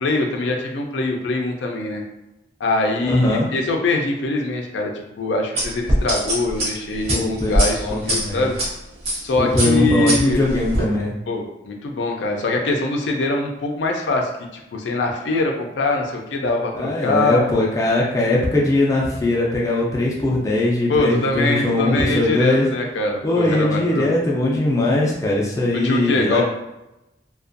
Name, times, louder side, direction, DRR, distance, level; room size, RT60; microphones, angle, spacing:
voice 1, 0.0-2.0 2.6-8.6 9.2-10.5 11.3-17.4 20.9-24.1 25.8-26.4, left 2 dB, 85° left, 2 dB, 0.4 m, -23 dB
voice 2, 3.1-3.5 7.1-8.4 9.4-11.1 16.8-22.7 23.2-26.4, left 1 dB, 20° left, -3 dB, 0.4 m, -20 dB
sound 1, 5.6-8.7 9.0-9.3 9.6-10.8, right 1 dB, 35° right, 0.6 m, -22 dB
2.5 x 2.2 x 2.5 m, 0.91 s
head